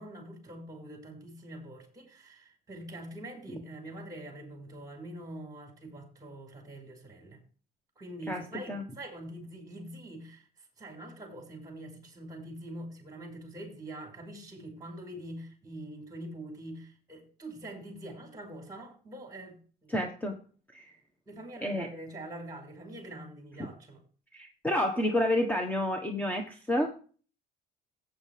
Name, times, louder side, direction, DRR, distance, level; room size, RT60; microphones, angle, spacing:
voice 1, 0.0-7.4 8.0-10.5 10.8-19.9 21.3-24.0, right 1 dB, 20° right, 5.1 m, -44 dB
voice 2, 19.9-20.4 20.7-20.9 21.6-21.9 24.3-27.0, left 1 dB, 10° left, 1.5 m, -29 dB
15.0 x 9.1 x 3.5 m
cardioid pair, 110°, 17 cm